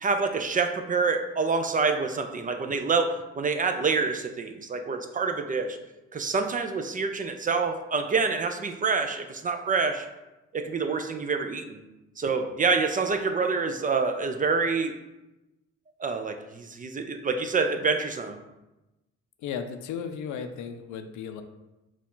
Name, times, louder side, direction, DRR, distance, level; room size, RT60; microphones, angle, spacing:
voice 1, 0.0-5.8 6.1-10.1 10.5-11.8 12.2-15.0 16.0-18.4, right 4 dB, 30° right, 6 dB, 0.3 m, -27 dB
voice 2, 19.4-21.4, left 7 dB, 80° left, 8 dB, 0.5 m, -35 dB
4.5 x 2.3 x 3.7 m, 1.0 s
cardioid pair, 90°, 30 cm